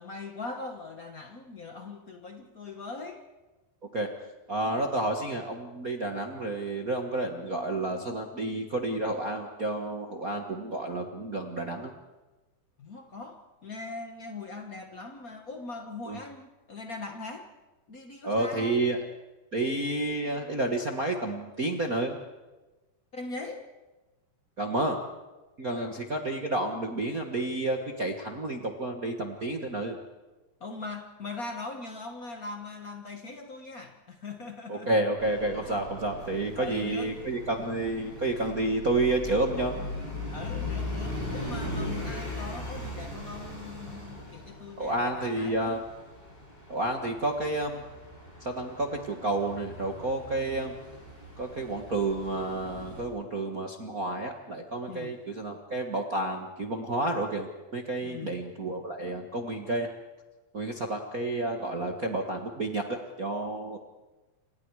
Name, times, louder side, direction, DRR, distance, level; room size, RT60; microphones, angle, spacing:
voice 1, 0.0-3.2 12.8-17.5 17.9-18.8 23.1-23.6 25.7-26.1 30.6-34.9 35.6-35.8 36.6-37.1 40.3-45.7 54.9-55.1 58.0-58.4, left 3 dB, 75° left, 3 dB, 0.8 m, -41 dB
voice 2, 4.5-11.9 16.1-16.2 18.2-19.0 19.5-22.2 24.6-25.0 25.6-30.0 34.7-39.8 44.8-45.8 46.7-47.8 48.4-50.7 51.4-59.9 60.5-63.8, right 2 dB, 55° right, 2 dB, 0.9 m, -30 dB
sound 1, 35.2-53.0, left 1 dB, 15° left, 7.3 m, -39 dB
29.0 x 27.5 x 4.9 m, 1.1 s
omnidirectional pair, 4.3 m